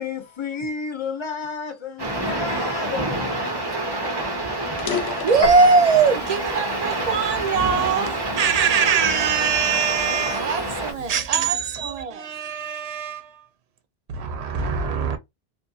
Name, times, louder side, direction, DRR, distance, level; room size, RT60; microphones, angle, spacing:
voice 1, 0.0-5.1, left 5 dB, 35° left, 0.6 m, -33 dB
sound 1, 2.0-10.9, right 2 dB, 25° right, 0.8 m, -27 dB
sound 2, 4.8-6.3 6.8-8.1 8.7-8.9 9.5-11.6, left 7 dB, 80° left, 0.8 m, -34 dB
voice 2, 5.2-12.3 14.5-15.2, right 5 dB, 50° right, 0.5 m, -21 dB
Piano, 5.4-11.3, left 2 dB, 65° left, 1.2 m, -35 dB
voice 3, 12.1-13.5 14.1-15.2, right 6 dB, 80° right, 0.8 m, -33 dB
2.6 x 2.5 x 2.3 m
omnidirectional pair, 1.1 m